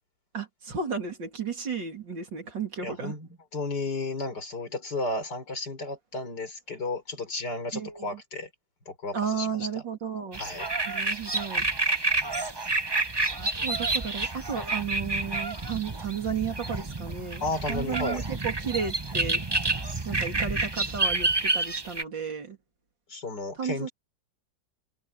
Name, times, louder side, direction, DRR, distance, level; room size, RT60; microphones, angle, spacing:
voice 1, 0.3-3.2 7.7-8.2 9.1-10.4 10.9-11.6 13.3-19.4 20.1-22.6 23.6-23.9, right 6 dB, 85° right, 3.8 m, -33 dB
voice 2, 2.8-8.5 8.9-9.5 9.7-9.8 10.4-10.7 17.4-18.2 23.1-23.9, left 2 dB, 65° left, 5.2 m, -33 dB
sound 1, 10.3-22.0, right 3 dB, 15° right, 0.9 m, -29 dB
omnidirectional pair, 1.9 m